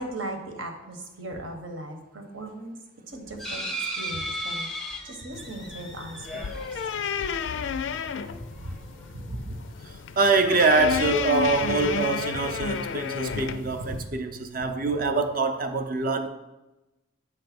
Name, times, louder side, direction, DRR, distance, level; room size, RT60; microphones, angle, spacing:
voice 1, 0.0-2.8 3.1-3.6 4.0-7.1 14.2-14.4, right 1 dB, 80° right, 1.1 m, -38 dB
sound 1, 3.4-8.0 8.6-8.7 9.0-9.1, equal, ahead, 0.6 m, -36 dB
sound 2, 5.3-14.0, left 6 dB, 70° left, 0.4 m, -32 dB
voice 2, 9.1-9.6 10.2-16.3, right 3 dB, 45° right, 0.6 m, -24 dB
8.3 x 3.2 x 5.9 m
head